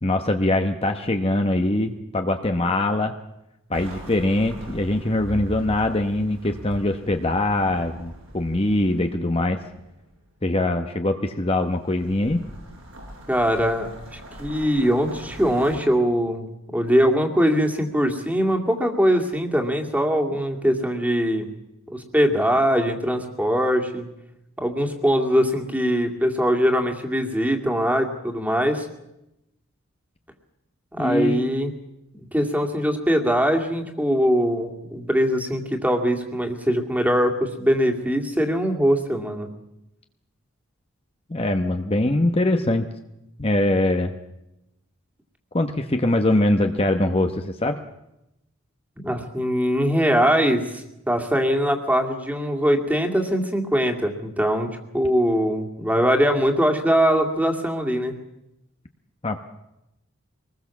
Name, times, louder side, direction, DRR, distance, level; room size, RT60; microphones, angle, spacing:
voice 1, 0.0-3.2 3.7-9.6 10.4-12.4 31.0-31.5 41.3-42.9 43.4-44.1 45.5-47.8 59.2-59.4, left 1 dB, 30° left, 6 dB, 1.1 m, -22 dB
sound 1, 3.7-10.2 11.3-15.8, right 1 dB, 85° right, 7.1 m, -41 dB
voice 2, 13.3-16.5 16.7-21.5 21.9-24.1 24.6-28.9 30.9-31.7 32.1-39.5 49.0-58.1, equal, 5° right, 3 dB, 2.4 m, -22 dB
24.5 x 20.0 x 7.2 m, 0.89 s
head